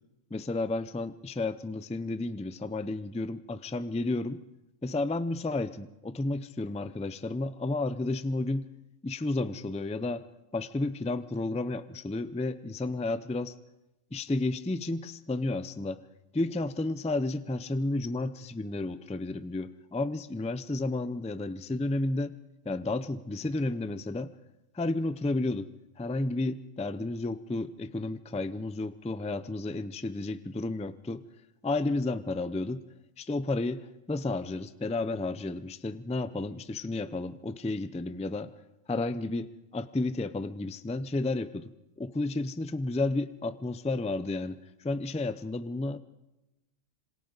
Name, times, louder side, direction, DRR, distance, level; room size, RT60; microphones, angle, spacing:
voice 1, 0.3-4.4 4.8-8.7 9.0-10.2 10.5-13.5 14.1-16.0 16.3-22.3 22.7-24.3 24.7-25.7 26.0-31.2 31.6-32.8 33.2-38.5 38.9-41.7 42.0-46.0, left 2 dB, 10° left, 13 dB, 0.3 m, -32 dB
27.0 x 26.0 x 4.0 m, 0.96 s
omnidirectional pair, 1.4 m